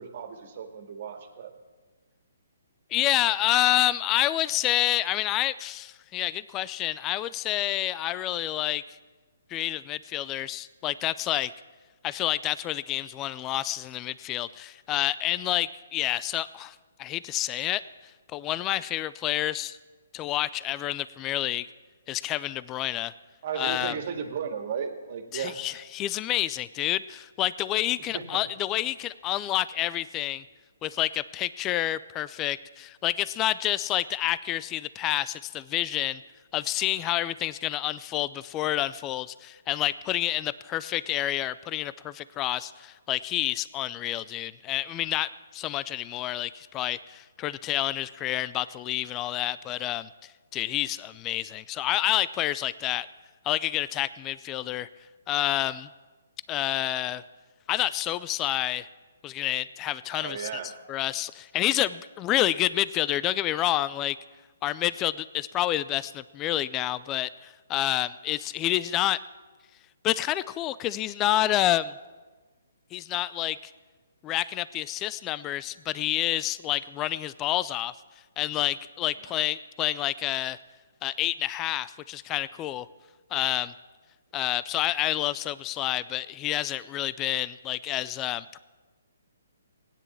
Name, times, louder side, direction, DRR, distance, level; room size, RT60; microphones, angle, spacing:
voice 1, 0.0-1.5 23.4-25.6 28.1-28.4 60.1-60.7 79.2-79.3, right 7 dB, 50° right, 6 dB, 2.0 m, -35 dB
voice 2, 2.9-8.8 9.5-11.5 12.0-17.8 18.3-19.8 20.1-21.7 22.1-23.1 23.6-24.0 25.3-30.4 30.8-36.2 36.5-50.1 50.5-53.1 53.4-54.9 55.3-55.9 56.5-57.2 57.7-58.9 59.2-60.5 60.9-64.2 64.6-69.2 70.0-71.9 72.9-73.7 74.2-77.9 78.4-80.6 81.0-82.9 83.3-83.7 84.3-88.6, left 14 dB, 20° left, 17 dB, 0.4 m, -28 dB
16.5 x 10.0 x 7.2 m, 1.3 s
hypercardioid pair, 145°, 0 cm